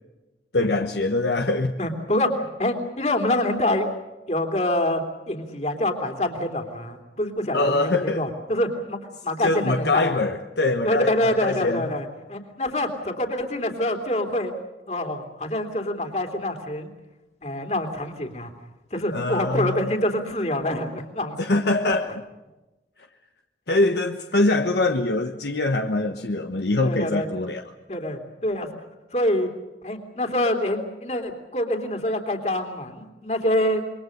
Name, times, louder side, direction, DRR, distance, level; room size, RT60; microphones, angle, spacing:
voice 1, 0.5-1.7 7.5-8.3 9.4-11.9 19.1-19.9 21.4-22.2 23.7-27.6, left 2 dB, 65° left, 5 dB, 1.2 m, -23 dB
voice 2, 1.8-3.9 4.3-10.1 10.8-14.5 14.9-16.9 17.4-18.5 18.9-21.4 26.8-27.3 27.9-28.7 29.1-29.5 29.8-33.8, left 1 dB, 40° left, 4 dB, 3.2 m, -26 dB
27.5 x 23.0 x 6.6 m, 1.1 s
head